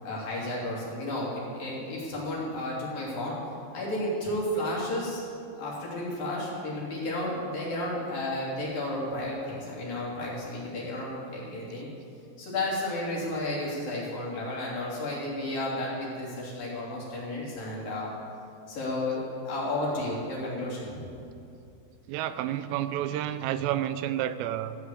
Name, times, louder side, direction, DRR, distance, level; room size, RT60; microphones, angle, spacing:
voice 1, 0.0-3.4 3.7-5.2 5.6-11.9 12.4-18.1 18.7-21.0, left 1 dB, 55° left, -5 dB, 4.5 m, -32 dB
voice 2, 22.1-24.8, right 12 dB, 85° right, 12 dB, 2.8 m, -30 dB
15.0 x 6.6 x 8.4 m, 2.6 s
omnidirectional pair, 5.0 m